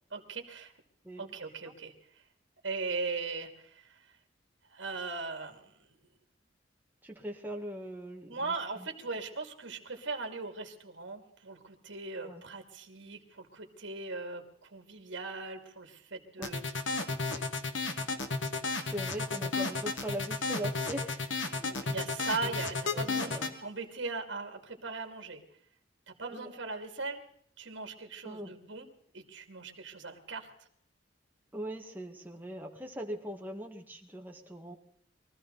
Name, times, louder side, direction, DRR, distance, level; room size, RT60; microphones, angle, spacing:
voice 1, 0.1-0.7 1.2-1.9 2.6-3.8 4.7-5.7 8.3-16.6 21.5-25.4 26.1-27.2 27.6-28.9 29.1-30.5, right 3 dB, 75° right, 4 dB, 2.5 m, -39 dB
voice 2, 7.0-8.9 12.2-12.4 16.4-16.6 18.9-23.5 26.3-26.5 28.2-28.6 31.5-34.8, right 1 dB, 10° right, 1 dB, 1.7 m, -41 dB
sound 1, 16.4-23.5, left 3 dB, 75° left, 1.6 m, -33 dB
23.5 x 14.5 x 4.0 m, 0.64 s
head